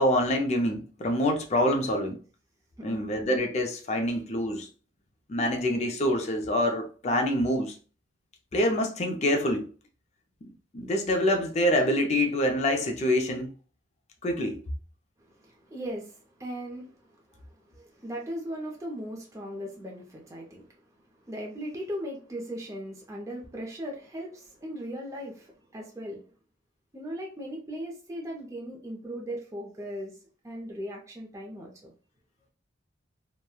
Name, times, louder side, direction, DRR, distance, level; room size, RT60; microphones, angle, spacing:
voice 1, 0.0-2.2 2.8-4.7 5.3-7.7 8.5-9.7 10.7-13.5 14.2-14.6, left 1 dB, 35° left, 0.4 m, -26 dB
voice 2, 2.8-3.1 15.2-20.7 21.3-26.2 26.9-30.1 30.4-31.9, equal, 15° right, 0.5 m, -38 dB
3.0 x 2.1 x 2.2 m
head